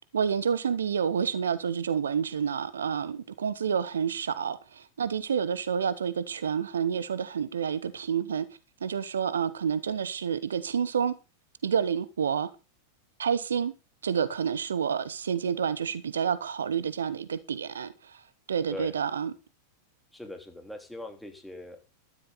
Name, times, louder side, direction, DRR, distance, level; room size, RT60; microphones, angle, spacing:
voice 1, 0.1-8.5 8.8-11.2 11.6-12.5 13.2-13.7 14.0-19.3, right 7 dB, 70° right, 0.9 m, -29 dB
voice 2, 20.1-21.8, left 1 dB, ahead, 3.5 m, -41 dB
13.0 x 11.5 x 4.2 m
figure-of-eight pair, 90°, 0 cm